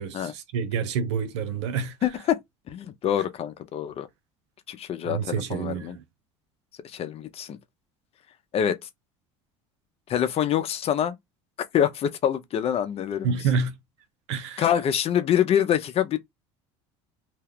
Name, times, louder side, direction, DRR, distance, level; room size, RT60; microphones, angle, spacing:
voice 1, 0.0-2.0 5.1-6.0 13.2-13.8 14.3-14.6, right 6 dB, 85° right, 0.7 m, -28 dB
voice 2, 2.0-2.4 2.7-4.1 4.7-6.0 6.9-7.6 8.5-8.8 10.1-11.2 11.7-13.4 14.6-16.2, left 9 dB, 45° left, 0.6 m, -25 dB
2.9 x 2.2 x 3.4 m
supercardioid pair, 90°, 14 cm